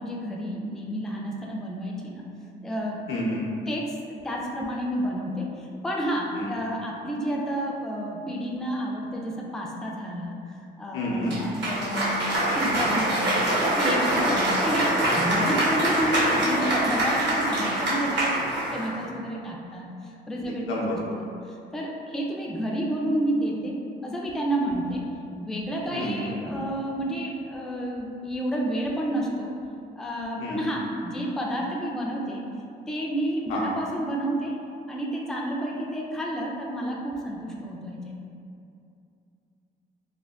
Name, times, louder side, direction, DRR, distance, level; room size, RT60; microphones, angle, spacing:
voice 1, 0.0-2.3 2.6-3.0 3.7-4.0 4.2-13.3 13.8-18.4 18.7-20.8 21.1-23.8 24.0-25.0 25.4-29.5 30.0-32.4 32.9-34.6 34.9-38.2, equal, ahead, -2 dB, 0.3 m, -30 dB
voice 2, 3.1-3.4 6.4-6.5 10.9-11.3 14.2-14.4 20.7-20.8 25.9-26.3 30.4-30.6 33.5-33.7, left 1 dB, 90° left, -5 dB, 0.6 m, -29 dB
Cheering / Applause, 11.3-19.0, right 1 dB, 60° right, 0.7 m, -24 dB
3.3 x 2.1 x 2.3 m, 2.5 s
cardioid pair, 90°, 20 cm